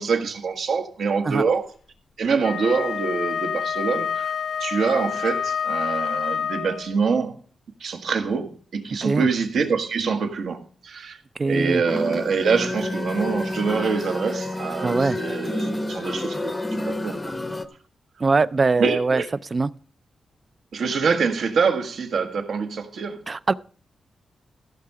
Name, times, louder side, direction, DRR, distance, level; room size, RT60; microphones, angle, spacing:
voice 1, 0.0-1.6 2.2-4.3 4.6-7.4 7.8-11.2 11.4-17.2 18.8-19.3 20.7-23.3, right 5 dB, 70° right, 1.6 m, -25 dB
Wind instrument woodwind instrument, 2.3-7.0, left 7 dB, 80° left, 0.9 m, -28 dB
voice 2, 11.4-11.8 14.8-15.2 18.2-19.2 19.5-19.7 23.3-23.5, right 3 dB, 30° right, 0.4 m, -21 dB
sound 1, 11.9-17.6, left 1 dB, 15° left, 0.7 m, -29 dB
15.0 x 6.6 x 4.8 m
wide cardioid pair, 140°, 0 cm